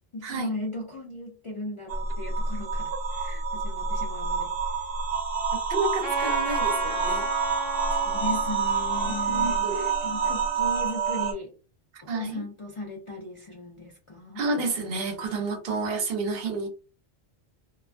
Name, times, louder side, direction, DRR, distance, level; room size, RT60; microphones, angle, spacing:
voice 1, 0.1-4.9 7.9-11.5 12.0-14.4, left 1 dB, 55° left, -1 dB, 0.3 m, -37 dB
sound 1, 1.9-11.3, right 5 dB, 35° right, 1.0 m, -28 dB
voice 2, 5.7-7.3 9.1-9.9 12.1-12.4 14.4-16.7, right 3 dB, 60° right, 4 dB, 0.9 m, -30 dB
Trumpet, 6.0-10.7, right 1 dB, 20° right, 0.7 m, -35 dB
2.3 x 2.2 x 2.4 m, 0.34 s
omnidirectional pair, 1.2 m